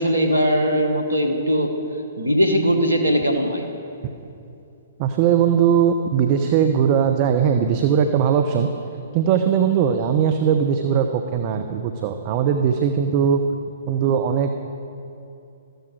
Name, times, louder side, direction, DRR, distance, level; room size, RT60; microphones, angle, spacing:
voice 1, 0.0-1.7 2.2-3.6, equal, 90° right, 5 dB, 1.6 m, -20 dB
voice 2, 5.0-8.7 9.1-13.4 13.9-14.5, right 8 dB, 40° right, 7 dB, 0.8 m, -19 dB
14.0 x 13.5 x 4.7 m, 2.7 s
figure-of-eight pair, 120°, 0 cm